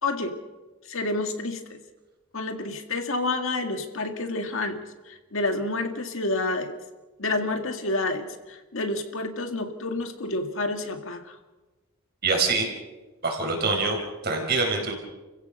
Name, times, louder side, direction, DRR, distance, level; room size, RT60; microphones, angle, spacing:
voice 1, 0.0-0.4 0.9-1.8 2.3-4.8 5.1-6.7 7.2-11.4, left 2 dB, 60° left, 5 dB, 2.0 m, -29 dB
voice 2, 12.2-12.7 13.2-14.0 14.2-14.9, right 3 dB, 45° right, 2 dB, 4.8 m, -24 dB
30.0 x 16.0 x 6.5 m, 1.2 s
head